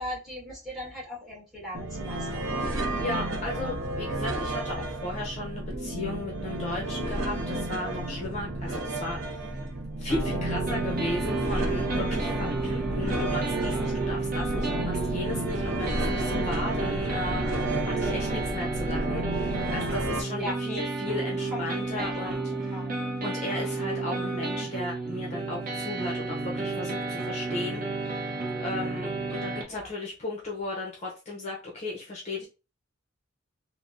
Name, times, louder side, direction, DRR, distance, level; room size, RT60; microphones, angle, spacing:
voice 1, 0.0-2.6 20.4-20.8 21.5-21.6 21.9-22.4 22.7-22.9 29.7-29.9, left 1 dB, ahead, -4 dB, 1.3 m, -38 dB
sound 1, 1.7-20.2, right 2 dB, 85° right, 0.6 m, -31 dB
voice 2, 3.0-9.6 10.0-22.8 23.2-28.1 28.6-32.5, left 2 dB, 35° left, -2 dB, 0.6 m, -36 dB
sound 2, 10.1-29.6, right 3 dB, 45° right, 0.7 m, -32 dB
3.3 x 2.0 x 2.5 m, 0.31 s
head